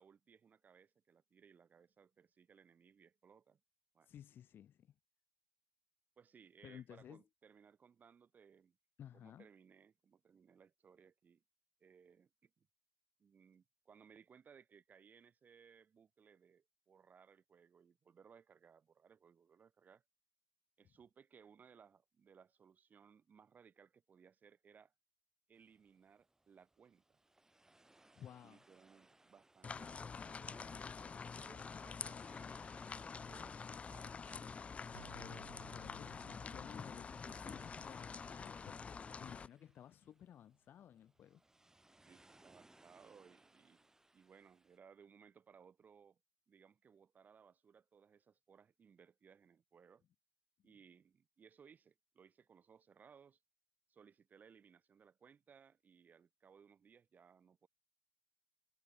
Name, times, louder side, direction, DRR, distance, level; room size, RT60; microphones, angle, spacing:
voice 1, 0.0-3.6 3.9-4.1 6.2-8.8 9.1-11.4 11.8-12.7 13.2-20.0 20.8-24.9 25.5-27.2 28.4-32.7 32.9-35.1 42.1-43.9 44.1-46.2 46.5-50.0 50.6-53.4 53.9-57.7, right 6 dB, 35° right, 2.8 m, -64 dB
voice 2, 4.1-4.9 6.6-7.2 9.0-9.5 28.2-28.6 35.1-35.5 35.7-41.4, left 10 dB, 45° left, 1.8 m, -56 dB
sound 1, 25.5-44.8, right 2 dB, 10° right, 6.3 m, -70 dB
sound 2, 29.6-39.5, left 5 dB, 25° left, 0.5 m, -47 dB
sound 3, 34.9-40.6, right 7 dB, 85° right, 0.6 m, -63 dB
figure-of-eight pair, 60°, 5 cm